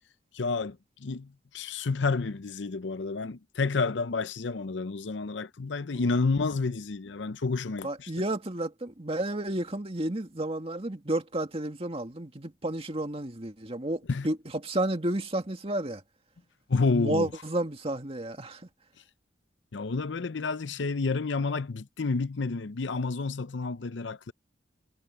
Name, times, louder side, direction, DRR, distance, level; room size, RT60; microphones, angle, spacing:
voice 1, 0.3-8.1 14.1-14.3 16.7-17.3 19.7-24.3, left 4 dB, 80° left, 0.7 m, -30 dB
voice 2, 7.8-14.4 14.6-16.0 16.9-18.6, right 1 dB, 35° right, 2.2 m, -31 dB
head